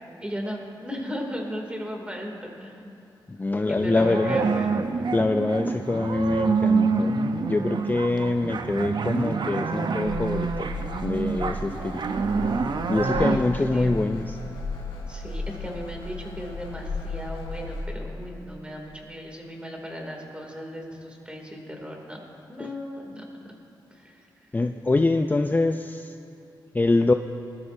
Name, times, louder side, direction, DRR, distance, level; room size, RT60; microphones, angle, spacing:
voice 1, 0.2-2.8 3.7-4.7 13.1-14.2 15.1-22.2 22.5-23.5 24.0-24.2, equal, 15° right, 0 dB, 2.6 m, -36 dB
voice 2, 3.3-4.4 5.1-7.2 7.5-10.7 11.0-12.0 12.9-14.4 22.6-22.7 24.5-26.2 26.7-27.1, left 2 dB, 20° left, 7 dB, 0.4 m, -24 dB
sound 1, 3.8-13.4, right 4 dB, 60° right, 0.7 m, -27 dB
sound 2, 10.0-17.9, left 2 dB, 85° left, 1.5 m, -35 dB
19.0 x 13.0 x 2.7 m, 2.7 s
cardioid pair, 55°, 9 cm